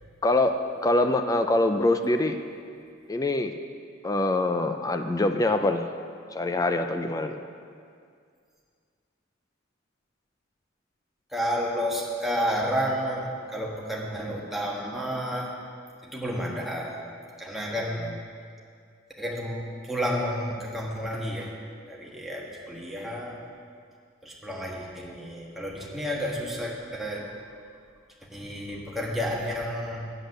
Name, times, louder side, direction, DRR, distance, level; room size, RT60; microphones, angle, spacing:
voice 1, 0.2-0.6 0.8-2.4 3.1-3.5 4.0-5.9 6.3-7.4, left 2 dB, 15° left, 7 dB, 0.4 m, -24 dB
voice 2, 11.3-15.5 16.1-16.9 17.4-18.0 19.2-19.6 19.9-21.5 21.9-23.4 24.2-27.3 28.3-30.0, equal, ahead, -4 dB, 1.3 m, -31 dB
8.3 x 8.0 x 6.6 m, 2.2 s
head